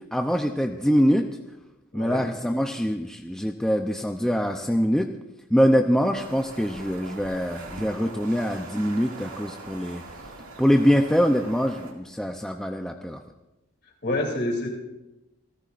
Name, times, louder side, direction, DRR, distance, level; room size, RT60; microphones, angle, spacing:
voice 1, 0.1-1.3 1.9-5.1 5.5-10.0 10.6-13.2, equal, 5° left, 3 dB, 0.5 m, -23 dB
sound 1, 6.1-11.9, right 2 dB, 85° right, 2.2 m, -42 dB
voice 2, 14.0-14.7, left 1 dB, 50° left, 0 dB, 2.9 m, -27 dB
27.5 x 14.0 x 2.5 m, 0.97 s
head